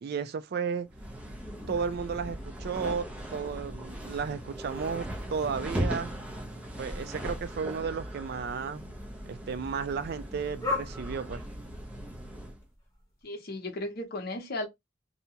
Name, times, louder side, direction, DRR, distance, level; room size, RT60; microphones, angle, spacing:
voice 1, 0.0-0.9 1.7-6.1 6.8-8.9 9.2-11.4, right 6 dB, 50° right, 0.3 m, -33 dB
mixed-breed dog (Mia), 0.9-13.2, left 3 dB, 15° left, 1.0 m, -44 dB
sound 1, 0.9-12.6, right 1 dB, 5° right, 0.6 m, -38 dB
voice 2, 13.2-14.7, left 1 dB, 50° left, 0.8 m, -35 dB
2.7 x 2.2 x 2.8 m
head